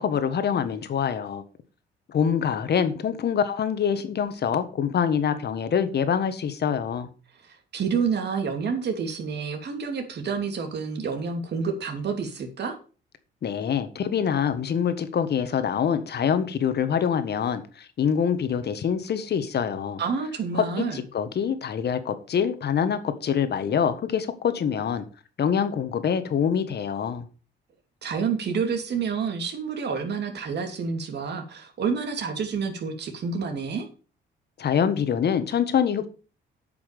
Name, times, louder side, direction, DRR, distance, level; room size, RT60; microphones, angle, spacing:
voice 1, 0.0-1.4 2.1-7.1 13.4-20.0 20.5-25.0 25.4-27.3 34.6-36.1, left 7 dB, 55° left, 1.5 m, -25 dB
voice 2, 7.4-12.8 20.0-21.0 28.0-33.9, right 5 dB, 60° right, 2.8 m, -29 dB
9.0 x 5.8 x 6.7 m
cardioid pair, 90°, 20 cm